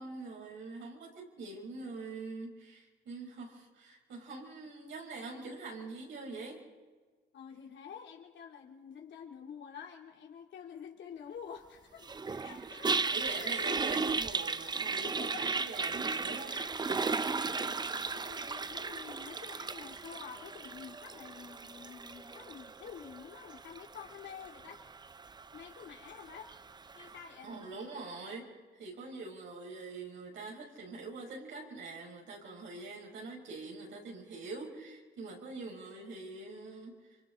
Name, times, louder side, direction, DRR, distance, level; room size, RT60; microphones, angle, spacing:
voice 1, 0.0-6.6 12.3-12.4 13.1-16.6 27.4-37.0, right 3 dB, 75° right, -1 dB, 5.9 m, -44 dB
voice 2, 7.3-12.1 12.4-12.9 13.3-13.8 15.0-15.5 16.5-24.8 25.5-26.5 26.9-27.5, left 7 dB, 70° left, 1 dB, 3.2 m, -49 dB
Toilet flush, 12.0-27.2, right 4 dB, 20° right, 0.5 m, -36 dB
28.5 x 25.0 x 4.0 m, 1.4 s
cardioid pair, 90°, 20 cm